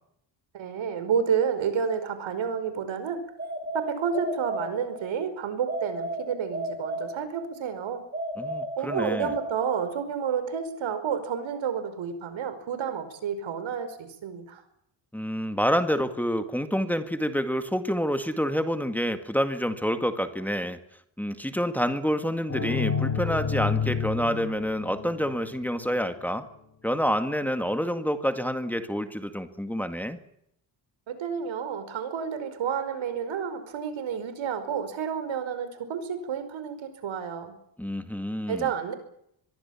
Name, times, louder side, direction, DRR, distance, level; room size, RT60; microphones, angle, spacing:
voice 1, 0.5-3.2 3.7-8.0 8.8-14.6 31.1-37.5 38.5-38.9, right 7 dB, 80° right, 11 dB, 5.3 m, -30 dB
sound 1, 3.4-5.2 5.7-7.6 8.1-10.0, right 1 dB, 20° right, 7.4 m, -33 dB
voice 2, 8.4-9.3 15.1-20.8 21.2-26.5 26.8-30.2 37.8-38.7, equal, 5° left, 8 dB, 2.0 m, -28 dB
sound 2, 22.5-26.1, left 6 dB, 35° left, 5.8 m, -30 dB
24.5 x 22.0 x 7.3 m, 0.74 s
wide cardioid pair, 145°, 46 cm